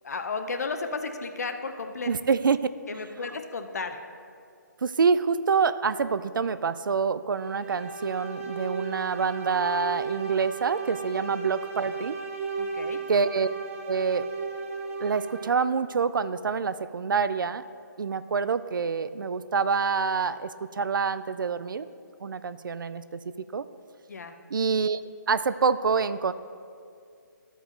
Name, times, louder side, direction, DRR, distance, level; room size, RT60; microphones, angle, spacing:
voice 1, 0.0-2.1 2.9-4.0 12.6-13.0 24.1-24.4, left 4 dB, 55° left, 7 dB, 0.7 m, -33 dB
voice 2, 2.1-2.7 4.8-12.2 13.1-13.5 13.9-14.3 15.0-17.6 18.0-21.9 22.2-23.2 23.5-23.7 24.5-25.0 25.3-26.3, right 5 dB, 90° right, 14 dB, 0.4 m, -26 dB
sound 1, 7.3-15.7, right 5 dB, 40° right, 1.0 m, -35 dB
13.0 x 5.0 x 3.8 m, 2.3 s
hypercardioid pair, 175°, 11 cm